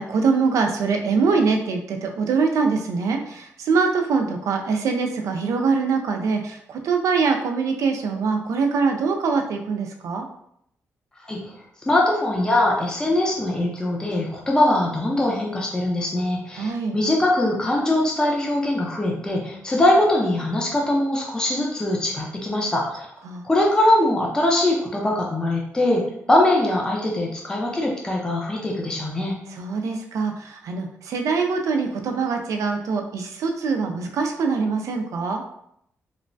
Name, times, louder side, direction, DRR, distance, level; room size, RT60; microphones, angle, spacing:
voice 1, 0.0-10.3 16.6-17.0 23.2-23.4 29.5-35.4, right 4 dB, 80° right, 4 dB, 0.4 m, -23 dB
voice 2, 11.9-23.1 23.4-26.0 26.3-29.4, left 1 dB, 15° left, -2 dB, 0.6 m, -22 dB
3.0 x 2.1 x 2.6 m, 0.73 s
cardioid pair, 100°, 5 cm